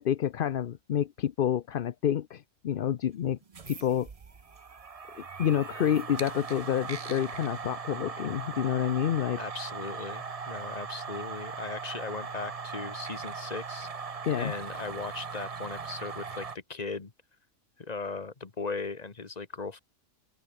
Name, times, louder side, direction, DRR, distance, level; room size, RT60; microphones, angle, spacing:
voice 1, 0.0-3.4 3.7-4.1 5.1-9.4 14.3-14.5, left 10 dB, 55° left, 0.7 m, -28 dB
sound 1, 3.4-16.6, right 5 dB, 30° right, 0.8 m, -39 dB
voice 2, 9.4-13.9 14.4-17.1 17.8-19.8, left 4 dB, 30° left, 1.5 m, -38 dB
omnidirectional pair, 1.4 m